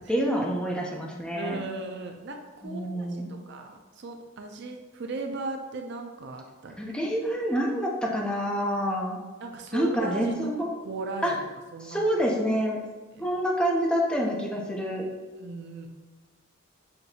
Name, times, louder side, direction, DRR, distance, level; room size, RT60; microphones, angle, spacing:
voice 1, 0.1-1.6 2.6-3.3 6.8-9.2 9.7-10.7 11.2-11.3 11.8-12.8 13.2-15.1, equal, 5° left, -2 dB, 0.5 m, -27 dB
voice 2, 1.3-6.8 9.4-10.3 10.8-11.4 11.7-12.0 13.1-13.3 15.4-15.9, right 3 dB, 55° right, 4 dB, 0.4 m, -37 dB
5.8 x 2.7 x 2.7 m, 1.3 s
head